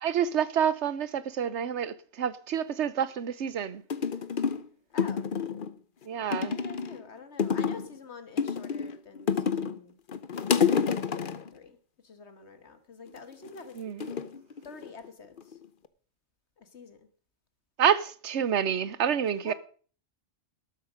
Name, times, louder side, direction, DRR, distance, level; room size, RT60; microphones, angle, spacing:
voice 1, 0.0-3.8 6.1-6.6 13.7-14.1 17.8-19.5, right 8 dB, 90° right, 1.2 m, -28 dB
sound 1, 3.5-3.6 3.9-4.7 5.0-5.7 6.3-7.0 7.4-7.9 8.4-9.8 10.1-11.5 13.1-13.5 14.0-15.1 15.4-15.9, left 6 dB, 55° left, 1.0 m, -29 dB
voice 2, 4.9-5.3 6.4-9.9 11.1-11.8 12.0-13.8 14.6-15.6 16.6-17.1 19.4-19.5, left 4 dB, 80° left, 1.9 m, -47 dB
12.5 x 12.5 x 5.1 m
omnidirectional pair, 1.1 m